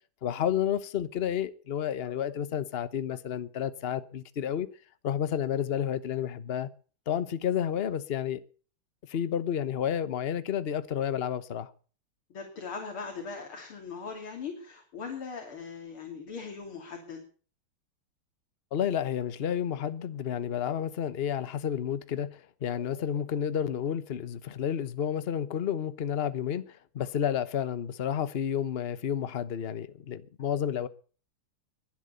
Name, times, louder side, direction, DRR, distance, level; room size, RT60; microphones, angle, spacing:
voice 1, 0.2-4.7 5.0-6.7 7.1-8.4 9.1-11.7 18.7-26.6 26.9-30.9, left 9 dB, 45° left, 0.8 m, -31 dB
voice 2, 12.3-17.2, left 5 dB, 75° left, 3.6 m, -40 dB
22.0 x 8.2 x 6.7 m
omnidirectional pair, 2.3 m